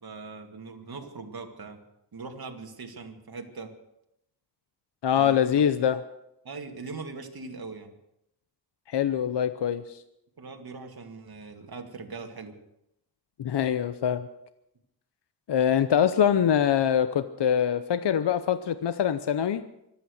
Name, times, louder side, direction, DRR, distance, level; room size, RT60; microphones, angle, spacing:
voice 1, 0.0-1.8 2.1-3.7 5.1-5.7 6.4-7.9 10.4-12.6, right 4 dB, 55° right, 4 dB, 2.2 m, -41 dB
voice 2, 5.0-6.0 8.9-10.0 13.4-14.3 15.5-19.6, left 9 dB, 70° left, 12 dB, 0.8 m, -24 dB
25.0 x 9.1 x 6.5 m, 0.83 s
wide cardioid pair, 105°, 43 cm